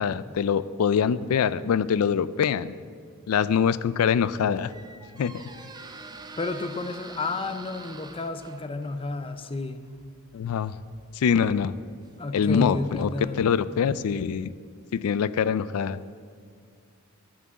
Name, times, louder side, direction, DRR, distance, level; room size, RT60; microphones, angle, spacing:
voice 1, 0.0-2.7 3.3-4.7 5.2-5.4 10.3-10.7 11.1-11.7 12.3-13.1 13.4-14.5 14.9-16.0, left 7 dB, 85° left, 17 dB, 0.4 m, -24 dB
Squeak, 4.0-12.7, right 3 dB, 20° right, 0.6 m, -47 dB
voice 2, 6.4-9.8 12.2-13.4, left 3 dB, 25° left, 9 dB, 0.6 m, -31 dB
11.0 x 6.1 x 8.3 m, 2.1 s
head